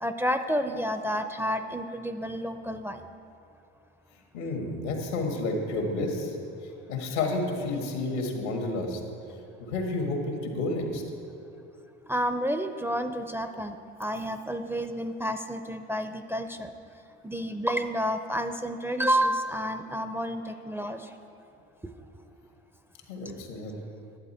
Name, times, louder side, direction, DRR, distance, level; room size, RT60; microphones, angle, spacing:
voice 1, 0.0-3.0 12.1-16.7 17.2-21.1, equal, 5° right, 7 dB, 0.4 m, -30 dB
voice 2, 4.3-6.4 6.6-9.0 9.6-11.0 23.1-23.8, left 2 dB, 90° left, 2 dB, 1.7 m, -30 dB
11.0 x 8.1 x 4.3 m, 2.7 s
supercardioid pair, 80°, 34 cm